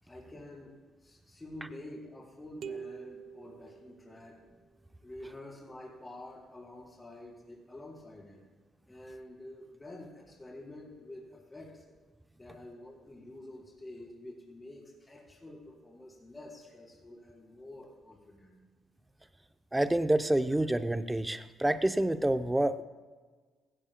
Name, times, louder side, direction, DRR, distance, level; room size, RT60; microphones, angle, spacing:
voice 1, 0.0-4.4 5.0-8.5 8.9-11.8 12.3-18.6, left 1 dB, 15° left, -4 dB, 4.4 m, -48 dB
sound 1, 2.6-4.5, right 6 dB, 60° right, 0.5 m, -45 dB
voice 2, 19.7-22.8, right 1 dB, 10° right, 10 dB, 0.6 m, -28 dB
16.5 x 15.0 x 2.2 m, 1.4 s
cardioid pair, 90°, 0 cm